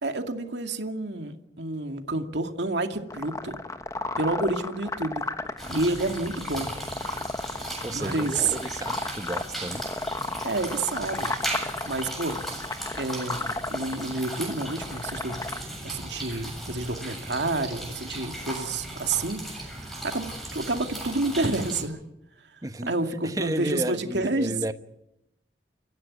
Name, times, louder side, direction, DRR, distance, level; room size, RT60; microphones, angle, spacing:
voice 1, 0.0-3.6 4.2-5.3 5.7-6.7 7.9-8.5 10.4-11.3 11.6-12.4 13.0-22.0 22.5-22.6 22.9-24.6, right 2 dB, 85° right, 5 dB, 2.3 m, -29 dB
sound 1, 3.1-15.6, left 2 dB, 20° left, 1.2 m, -33 dB
sound 2, 5.6-21.8, right 1 dB, ahead, 7.5 m, -37 dB
voice 2, 7.8-9.8 22.6-22.9 23.2-24.7, right 1 dB, 20° right, 10 dB, 1.0 m, -32 dB
29.5 x 15.5 x 9.7 m, 0.87 s
head